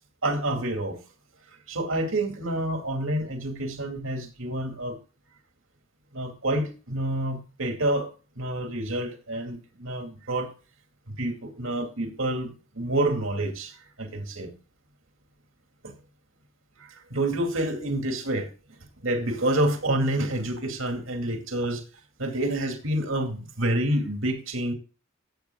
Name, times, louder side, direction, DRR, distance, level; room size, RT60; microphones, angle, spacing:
voice 1, 0.2-1.0 1.7-5.0 6.1-8.1 8.4-10.5 11.1-14.5 15.8-15.9 16.8-21.8 22.2-24.7, right 1 dB, 85° right, 4 dB, 2.3 m, -28 dB
15.5 x 7.9 x 2.3 m, 0.32 s
head